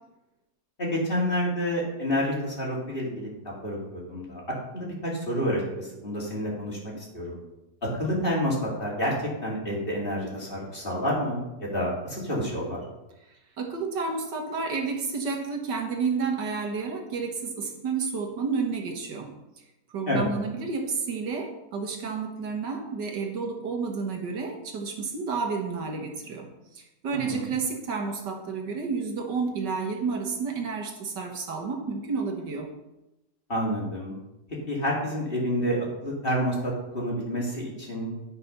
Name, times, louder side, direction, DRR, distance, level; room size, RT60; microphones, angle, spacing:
voice 1, 0.8-4.4 4.7-7.4 7.8-12.8 20.1-20.3 27.1-27.5 33.5-34.1 34.7-38.1, equal, 30° left, -4 dB, 2.7 m, -29 dB
voice 2, 13.6-19.3 19.9-26.5 26.7-32.7, right 4 dB, 90° right, 2 dB, 2.0 m, -30 dB
11.0 x 5.7 x 5.5 m, 0.95 s
omnidirectional pair, 1.8 m